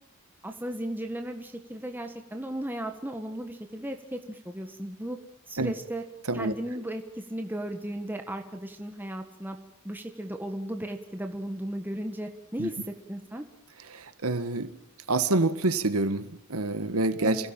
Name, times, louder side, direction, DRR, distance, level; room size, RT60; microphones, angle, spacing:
voice 1, 0.4-5.2 5.5-6.0 6.3-9.6 9.8-12.7 13.1-13.5 17.2-17.5, right 1 dB, 10° right, 4 dB, 1.6 m, -35 dB
voice 2, 13.9-14.7 15.1-17.5, right 2 dB, 80° right, 11 dB, 1.5 m, -27 dB
27.5 x 17.0 x 8.9 m, 0.75 s
head